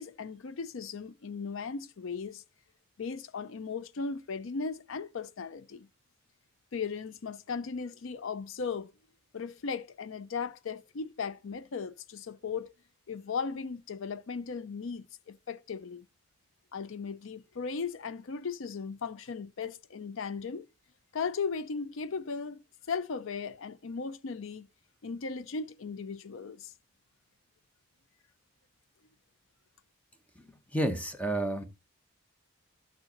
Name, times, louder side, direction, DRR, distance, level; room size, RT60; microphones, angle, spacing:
voice 1, 0.0-2.4 3.0-5.9 6.7-8.9 9.3-12.7 13.1-16.0 16.7-20.7 21.1-22.6 22.9-24.7 25.0-26.7, left 5 dB, 65° left, 0.5 m, -37 dB
voice 2, 30.4-31.6, right 1 dB, 5° left, 1.0 m, -31 dB
13.0 x 6.4 x 2.9 m
head